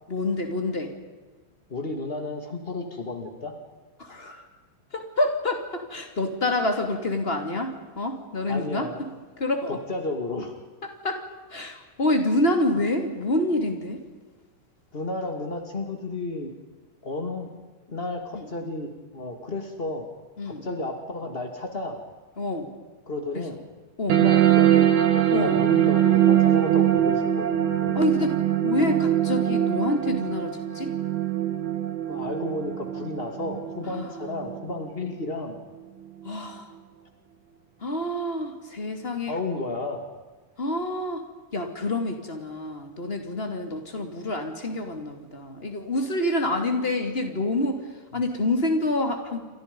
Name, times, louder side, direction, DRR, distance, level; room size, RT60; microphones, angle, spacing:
voice 1, 0.1-0.9 4.0-4.4 4.9-9.1 9.4-9.8 11.0-11.2 11.5-14.0 18.3-18.5 20.4-20.7 22.4-22.7 23.3-23.4 24.0-24.2 25.3-25.6 27.9-28.4 28.6-30.9 33.9-34.0 36.2-36.7 37.8-39.3 40.6-41.2 41.5-47.9 48.1-49.4, left 1 dB, 20° left, 5 dB, 1.5 m, -27 dB
voice 2, 1.7-3.5 4.1-4.3 8.5-9.0 9.7-10.5 14.9-16.5 17.0-17.6 17.9-20.0 20.4-22.0 23.0-23.6 24.1-28.3 32.1-35.6 39.3-40.0, left 2 dB, 60° left, 4 dB, 0.6 m, -32 dB
sound 1, 24.1-35.1, right 11 dB, 60° right, 3.8 m, -22 dB
29.5 x 26.5 x 5.4 m, 1.3 s
omnidirectional pair, 5.5 m